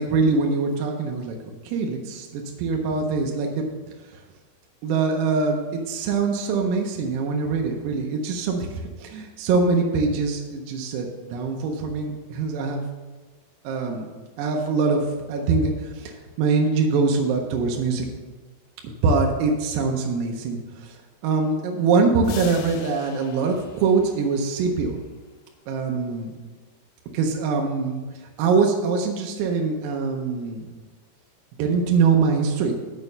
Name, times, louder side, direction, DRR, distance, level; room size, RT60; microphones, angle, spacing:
voice 1, 0.0-1.4 1.7-3.7 4.8-12.8 13.6-14.1 14.4-18.1 18.8-21.0 21.2-25.0 25.7-26.3 27.1-28.0 28.4-30.7 31.6-32.7, right 4 dB, 85° right, 2 dB, 2.8 m, -23 dB
sound 1, 22.2-25.0, left 8 dB, 85° left, 2.2 m, -41 dB
7.1 x 5.4 x 6.5 m, 1.3 s
omnidirectional pair, 4.8 m